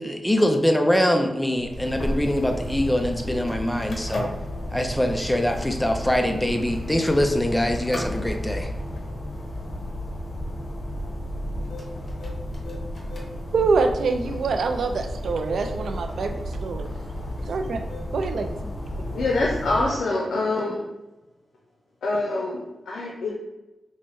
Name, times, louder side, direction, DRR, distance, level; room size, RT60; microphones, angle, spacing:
voice 1, 0.0-4.3 4.7-8.7, left 1 dB, 10° left, 4 dB, 0.4 m, -23 dB
sound 1, 1.5-19.9, left 1 dB, 55° left, 0.9 m, -32 dB
voice 2, 13.5-16.4 16.6-16.9 17.5-17.8 18.1-18.5, right 4 dB, 80° right, 6 dB, 0.3 m, -25 dB
voice 3, 18.9-20.8 22.0-23.3, left 2 dB, 85° left, -2 dB, 0.5 m, -25 dB
5.3 x 2.1 x 3.1 m, 1.1 s
cardioid pair, 55°, 0 cm